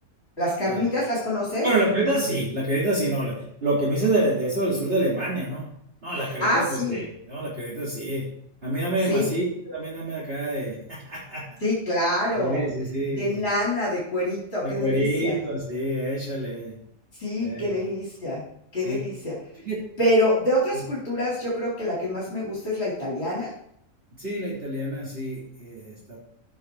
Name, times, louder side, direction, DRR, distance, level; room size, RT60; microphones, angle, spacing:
voice 1, 0.4-1.7 6.4-7.0 9.1-9.3 11.6-12.6 13.1-15.4 17.2-18.4 18.7-19.3 20.0-23.5, left 1 dB, 45° left, -7 dB, 4.0 m, -25 dB
voice 2, 1.6-5.7 6.0-8.2 8.6-11.6 12.3-13.5 14.6-16.8 17.4-17.9 18.8-19.0 19.6-19.8 24.2-26.2, right 1 dB, 45° right, -7 dB, 3.3 m, -27 dB
14.5 x 6.3 x 4.8 m, 0.71 s
omnidirectional pair, 1.5 m